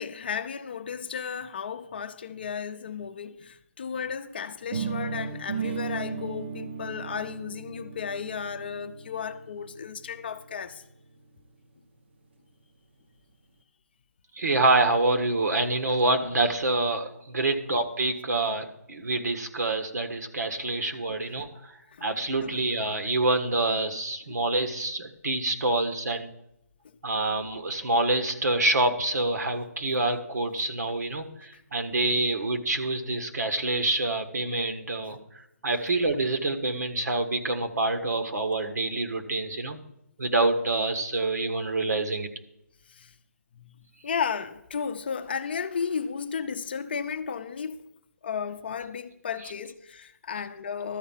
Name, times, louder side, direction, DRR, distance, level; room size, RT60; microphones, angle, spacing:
voice 1, 0.0-10.8 21.9-22.1 22.4-22.6 24.3-24.4 42.9-43.1 43.6-47.8 48.2-51.0, left 6 dB, 35° left, 0.6 m, -34 dB
sound 1, 4.7-10.6, right 6 dB, 40° right, 0.7 m, -36 dB
voice 2, 14.3-21.5 22.0-26.3 27.0-35.2 35.6-39.8 40.2-42.3, right 2 dB, 75° right, 1.5 m, -26 dB
12.5 x 4.6 x 7.2 m
hypercardioid pair, 170°, 9 cm